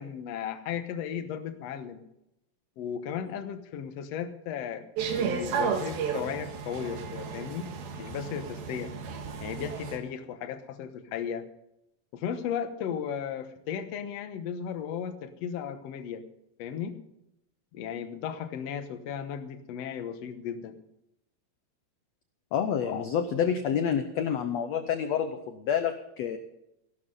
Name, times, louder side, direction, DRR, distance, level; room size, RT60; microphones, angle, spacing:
voice 1, 0.0-2.0 2.8-4.8 5.2-7.7 8.0-8.9 9.4-11.5 12.1-16.2 16.6-17.0 17.7-20.8 22.8-23.0, left 8 dB, 60° left, 8 dB, 1.8 m, -35 dB
sound 1, 5.0-10.0, right 6 dB, 85° right, 3.5 m, -33 dB
voice 2, 22.5-26.4, left 8 dB, 90° left, 9 dB, 1.5 m, -28 dB
16.5 x 12.0 x 5.4 m, 0.85 s
omnidirectional pair, 4.2 m